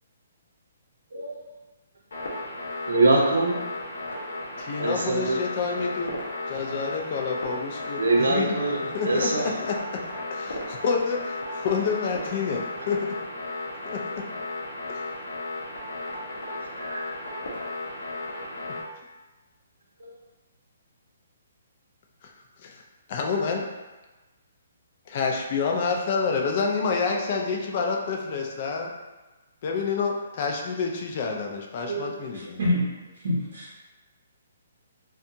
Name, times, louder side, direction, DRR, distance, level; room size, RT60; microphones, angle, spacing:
sound 1, 2.1-18.8, left 2 dB, 75° left, 0.6 m, -35 dB
voice 1, 2.9-3.6 4.8-5.4 8.0-9.6 16.6-17.0 20.0-20.1 31.9-32.1, right 2 dB, 85° right, -1 dB, 0.6 m, -24 dB
voice 2, 4.6-6.2 6.5-8.6 8.9-10.0 10.3-13.2 13.8-14.3 14.9-15.1 18.7-18.8 22.6-22.8 23.1-23.7 25.1-28.9 29.6-32.6, left 5 dB, 35° left, 1 dB, 0.4 m, -28 dB
voice 3, 32.3-32.9 33.2-33.8, left 1 dB, 50° right, -7 dB, 0.7 m, -26 dB
2.7 x 2.3 x 2.6 m, 1.1 s
hypercardioid pair, 170°, 0 cm